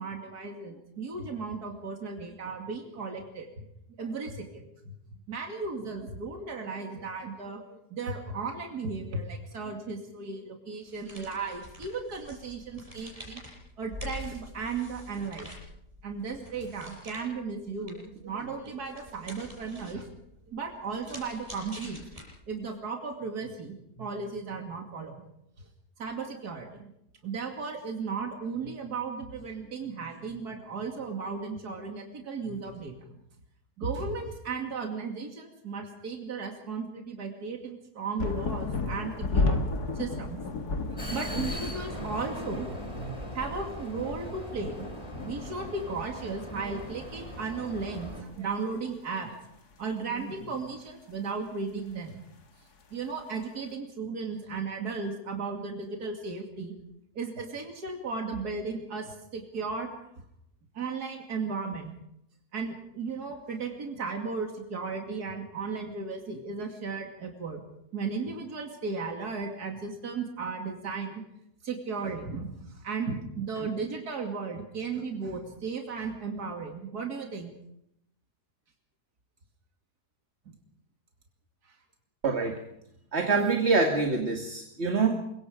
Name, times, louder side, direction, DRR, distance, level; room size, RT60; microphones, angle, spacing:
voice 1, 0.0-3.5 4.0-4.9 5.3-13.4 13.8-15.5 16.0-20.1 20.5-22.0 22.5-25.2 26.0-26.9 27.2-33.0 33.8-39.6 40.0-40.4 40.8-42.7 43.0-44.9 45.2-49.4 49.8-52.2 52.9-56.7 57.1-59.9 60.7-61.9 62.5-67.6 67.9-71.1 71.6-72.5 72.8-77.5 80.5-80.6, right 4 dB, 70° right, 2 dB, 3.0 m, -35 dB
sound 1, 10.8-22.7, left 1 dB, 20° right, 6.6 m, -47 dB
sound 2, 38.2-46.0 46.3-46.4 46.7-47.6 48.5-48.6, left 3 dB, 70° left, 2.4 m, -33 dB
Vehicle, 41.0-48.2, equal, 20° left, 3.9 m, -40 dB
voice 2, 82.2-82.6 83.1-85.2, right 4 dB, 40° right, 3 dB, 2.3 m, -25 dB
25.0 x 23.0 x 5.1 m, 0.77 s
omnidirectional pair, 1.7 m